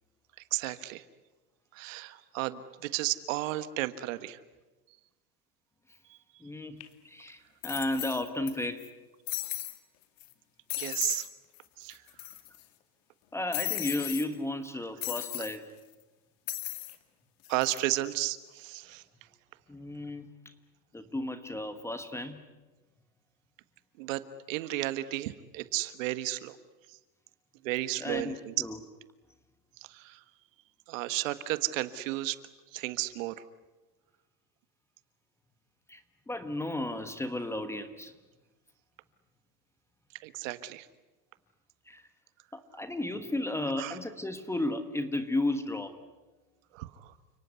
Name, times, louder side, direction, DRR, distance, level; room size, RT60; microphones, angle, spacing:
voice 1, 0.5-1.0 1.7-4.4 10.8-11.3 11.8-12.0 17.5-19.0 24.0-24.2 24.5-26.6 27.6-28.5 29.9-30.2 30.9-32.4 32.7-33.3 40.2-40.9 43.8-44.0 46.7-47.1, right 16 dB, 50° right, 13 dB, 1.4 m, -33 dB
voice 2, 6.4-6.8 7.0-8.9 13.3-15.7 19.7-20.3 20.9-22.4 28.0-28.8 35.9-36.0 36.3-38.1 41.9-42.0 42.5-46.0, left 1 dB, 5° left, 10 dB, 1.2 m, -33 dB
sound 1, 6.8-6.9 7.6-8.5 8.8-8.9 9.3-9.8 10.2-10.3 10.7-11.3 11.6-11.7 11.9-12.6 13.5-14.3 15.0-15.6 16.5-17.0 17.4-17.8, left 17 dB, 50° left, 2.4 m, -36 dB
30.0 x 18.5 x 9.6 m, 1.2 s
supercardioid pair, 145°, 49 cm